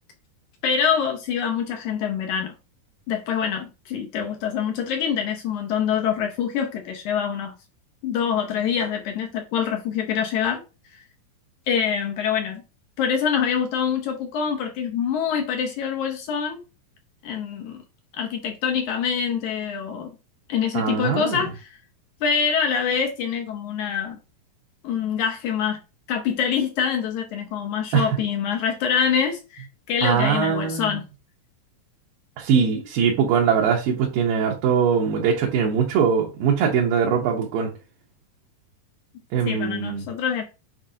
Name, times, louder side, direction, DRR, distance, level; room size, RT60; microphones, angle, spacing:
voice 1, 0.6-2.5 3.1-7.5 8.0-10.6 11.7-12.6 13.0-16.6 17.2-17.8 18.2-20.1 20.5-21.7 22.2-24.2 24.8-25.8 26.1-31.0 39.4-40.4, left 7 dB, 70° left, 2.0 m, -25 dB
voice 2, 20.7-21.4 27.9-28.2 30.0-31.0 32.4-37.7 39.3-40.1, right 7 dB, 75° right, 2.6 m, -22 dB
7.5 x 4.7 x 2.8 m
omnidirectional pair, 4.2 m